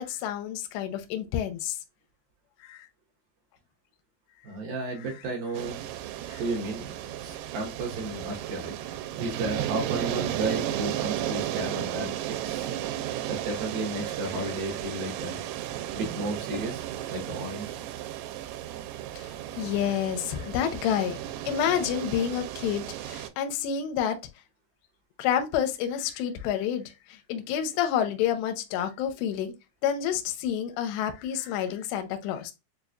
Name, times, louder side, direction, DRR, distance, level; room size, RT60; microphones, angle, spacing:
voice 1, 0.0-1.8 2.6-2.9 6.3-6.4 19.2-19.3 19.6-21.2 21.5-24.2 25.2-26.8 27.1-29.5 29.8-32.5, left 9 dB, 80° left, 2.6 m, -29 dB
voice 2, 4.4-5.8 6.4-6.9 7.2-8.7 9.2-12.7 13.3-16.8 17.1-17.7, right 2 dB, 70° right, 2.3 m, -33 dB
sound 1, 5.5-23.3, right 12 dB, 85° right, 2.9 m, -34 dB
6.8 x 2.3 x 2.5 m
omnidirectional pair, 5.2 m